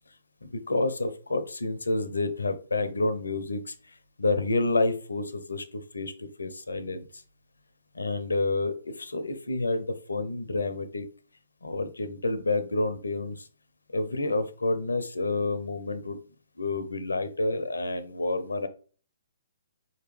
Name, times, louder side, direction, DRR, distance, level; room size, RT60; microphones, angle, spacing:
voice 1, 0.4-3.7 4.2-7.2 7.9-11.1 11.6-13.5 13.9-16.2 16.6-18.7, left 2 dB, 70° left, 11 dB, 0.6 m, -29 dB
4.6 x 2.9 x 3.2 m, 0.39 s
figure-of-eight pair, 125°, 0 cm